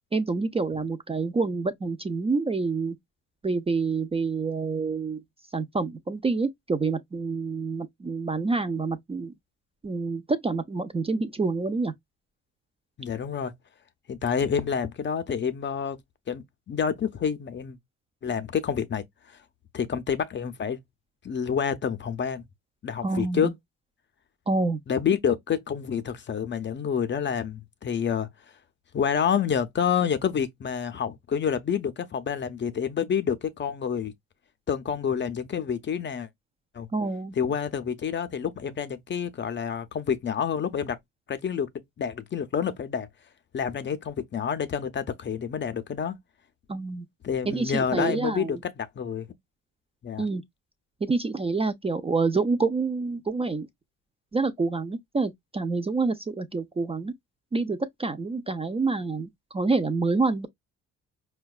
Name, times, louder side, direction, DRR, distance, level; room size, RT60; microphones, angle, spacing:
voice 1, 0.1-3.0 3.4-5.2 5.5-9.3 9.8-11.9 23.0-23.5 24.5-24.8 36.9-37.3 46.7-47.1 47.5-48.6 50.2-50.4 51.0-53.7 54.3-57.1 57.5-60.5, right 3 dB, 20° right, 0.4 m, -27 dB
voice 2, 13.0-13.5 14.1-16.0 16.3-17.8 18.2-19.4 19.7-20.8 21.2-22.4 22.8-23.5 24.9-28.3 28.9-34.1 34.7-36.3 36.7-36.9 37.4-41.0 41.3-41.7 42.0-43.1 43.5-46.2 47.2-49.3 50.0-50.3, left 7 dB, 40° left, 0.5 m, -28 dB
4.5 x 2.2 x 2.3 m
cardioid pair, 90°, 30 cm